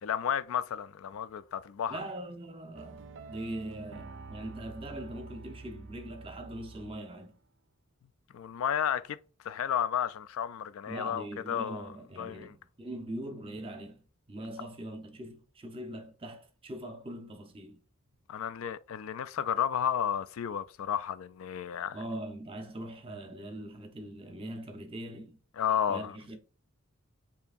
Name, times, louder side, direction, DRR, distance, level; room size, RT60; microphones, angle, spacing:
voice 1, 0.0-2.0 8.3-9.2 9.4-11.9 12.2-12.5 18.3-22.0 25.5-26.2, left 9 dB, 70° left, 0.3 m, -32 dB
voice 2, 1.9-7.3 10.9-14.0 14.3-17.8 21.9-25.4 25.9-26.4, right 1 dB, 25° right, 0.8 m, -41 dB
sound 1, 2.7-7.3, right 3 dB, 60° right, 0.4 m, -48 dB
6.9 x 2.8 x 2.5 m
head